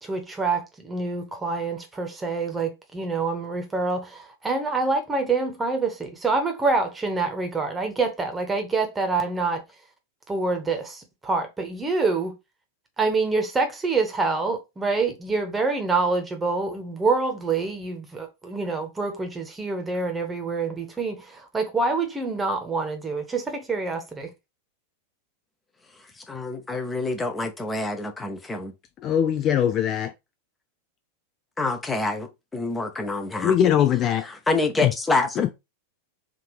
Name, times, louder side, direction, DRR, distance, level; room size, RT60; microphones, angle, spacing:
voice 1, 0.0-9.6 10.3-12.3 13.0-24.3, right 3 dB, 15° right, 1.1 m, -26 dB
voice 2, 26.3-28.7 31.6-33.5 34.5-35.3, left 3 dB, 10° left, 0.8 m, -26 dB
voice 3, 29.0-30.1 33.4-34.2 34.8-34.9 35.4-35.5, left 9 dB, 35° left, 0.4 m, -21 dB
3.7 x 2.8 x 4.7 m
figure-of-eight pair, 90°, 0 cm